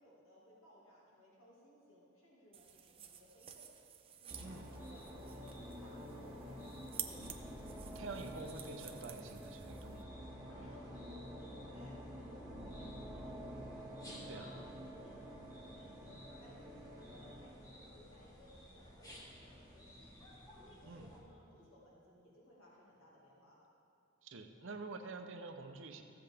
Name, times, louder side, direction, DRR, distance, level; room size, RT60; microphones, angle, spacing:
voice 1, 0.0-3.7 4.2-6.9 10.4-13.7 14.3-20.1 20.5-23.6, equal, 80° left, -6 dB, 2.1 m, -63 dB
sound 1, 2.5-10.0, right 9 dB, 30° right, 0.5 m, -51 dB
sound 2, 4.3-21.2, equal, 20° left, 1.4 m, -57 dB
sound 3, 4.3-17.6, equal, 10° right, 1.0 m, -49 dB
voice 2, 7.9-10.1 14.2-14.5 20.8-21.1 24.2-26.0, right 3 dB, 65° right, 6 dB, 0.8 m, -48 dB
14.5 x 7.8 x 3.5 m, 2.6 s
head